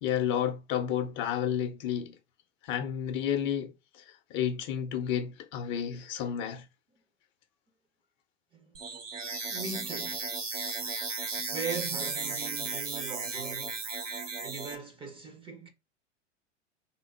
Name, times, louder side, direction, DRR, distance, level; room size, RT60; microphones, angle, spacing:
voice 1, 0.0-2.2 2.6-6.7, left 9 dB, 30° left, 0.6 m, -31 dB
sound 1, 8.7-14.7, right 4 dB, 85° right, 0.9 m, -35 dB
voice 2, 9.5-10.3 11.4-13.8 14.4-15.7, right 4 dB, 15° right, 0.6 m, -40 dB
3.6 x 2.0 x 4.3 m
figure-of-eight pair, 95°, 37 cm